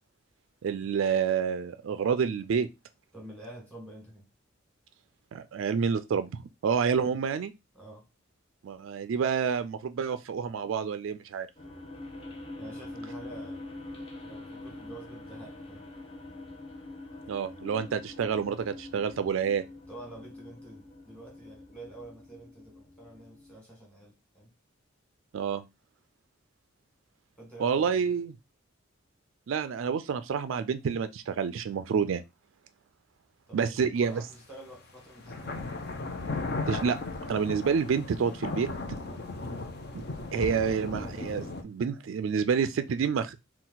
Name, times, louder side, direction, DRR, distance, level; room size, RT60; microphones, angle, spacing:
voice 1, 0.6-2.7 5.3-7.5 8.6-11.5 17.3-19.6 25.3-25.6 27.6-28.3 29.5-32.2 33.5-34.2 36.7-37.0 37.3-38.7 39.9-40.0 40.3-43.4, right 6 dB, 70° right, 0.3 m, -28 dB
voice 2, 3.1-4.3 7.7-8.0 12.6-13.7 14.2-15.9 19.9-24.5 27.4-28.1 33.5-35.6, right 1 dB, 5° left, 1.6 m, -48 dB
sound 1, 11.6-23.6, left 2 dB, 30° left, 0.9 m, -45 dB
sound 2, 34.3-34.4 35.2-41.6, left 3 dB, 50° left, 0.6 m, -36 dB
4.1 x 2.3 x 3.9 m
head